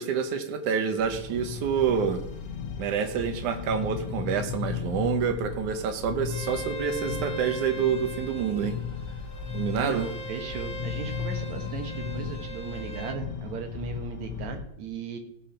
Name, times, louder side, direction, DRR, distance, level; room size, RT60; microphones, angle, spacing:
voice 1, 0.0-2.2 2.8-8.8 9.5-10.1, right 7 dB, 90° right, 7 dB, 2.6 m, -27 dB
sound 1, 1.0-14.6, left 7 dB, 65° left, 2.0 m, -35 dB
Bowed string instrument, 6.3-13.2, right 3 dB, 30° left, 0.9 m, -40 dB
voice 2, 9.8-15.2, right 7 dB, 70° right, 5 dB, 2.4 m, -37 dB
16.5 x 6.0 x 5.8 m, 0.80 s
omnidirectional pair, 3.4 m